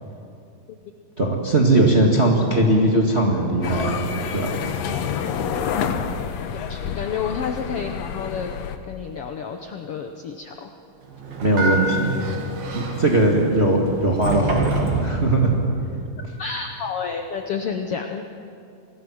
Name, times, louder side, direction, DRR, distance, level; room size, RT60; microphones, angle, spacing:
voice 1, 1.2-4.6 11.4-12.2 12.7-15.5, right 1 dB, 25° right, 0 dB, 1.4 m, -19 dB
sound 1, 2.1-17.7, equal, 70° right, 8.8 m, -37 dB
sound 2, 3.6-8.8, left 7 dB, 65° left, 1.8 m, -28 dB
voice 2, 6.7-8.5 8.9-10.7 16.4-18.2, left 6 dB, 85° left, 5 dB, 1.2 m, -30 dB
Sliding door, 11.1-15.8, right 3 dB, 85° right, 4.3 m, -29 dB
27.5 x 20.5 x 6.3 m, 2.5 s
omnidirectional pair, 4.0 m